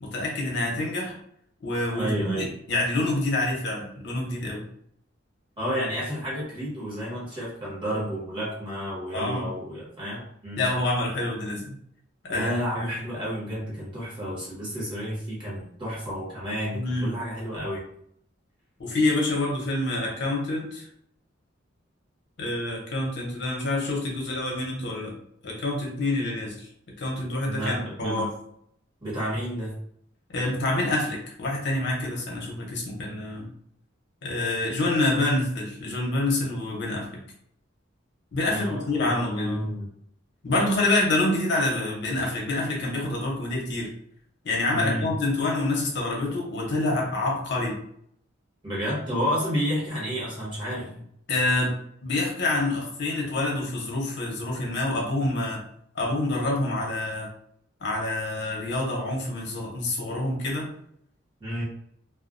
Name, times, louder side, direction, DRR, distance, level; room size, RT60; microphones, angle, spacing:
voice 1, 0.0-1.2 1.6-4.6 9.1-9.5 10.6-11.7 12.2-12.9 16.7-17.2 18.8-20.9 22.4-25.2 25.4-26.7 27.0-28.3 30.3-33.5 34.2-37.2 38.3-39.7 40.4-43.9 44.4-47.8 51.3-51.7 52.0-55.6 55.9-57.3 57.8-60.7, left 2 dB, 60° left, -2 dB, 0.7 m, -27 dB
voice 2, 1.9-2.5 5.6-10.6 12.3-17.8 27.4-28.3 29.0-29.7 38.5-39.8 44.7-45.1 48.6-51.0 61.4-61.6, equal, 25° right, -6 dB, 1.0 m, -31 dB
2.2 x 2.2 x 2.5 m, 0.68 s
head